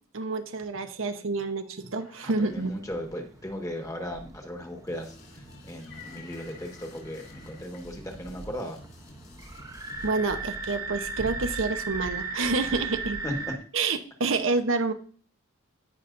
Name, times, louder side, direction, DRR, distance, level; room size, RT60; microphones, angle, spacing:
voice 1, 0.1-2.7 10.0-13.2 13.7-14.9, right 3 dB, 65° right, 7 dB, 0.9 m, -28 dB
sound 1, 0.7-0.8 1.2-1.3 1.6-2.7 4.6-4.8 5.5-7.8 8.9-9.2 10.3-10.7 11.4-12.9, left 5 dB, 80° left, 5.2 m, -52 dB
voice 2, 2.2-8.8 12.6-12.8 13.2-13.5, equal, 15° left, 3 dB, 1.5 m, -37 dB
sound 2, 2.4-13.6, right 3 dB, 15° right, 0.9 m, -38 dB
sound 3, 4.9-10.1, left 1 dB, 55° left, 4.2 m, -50 dB
17.0 x 5.8 x 2.6 m, 0.41 s
head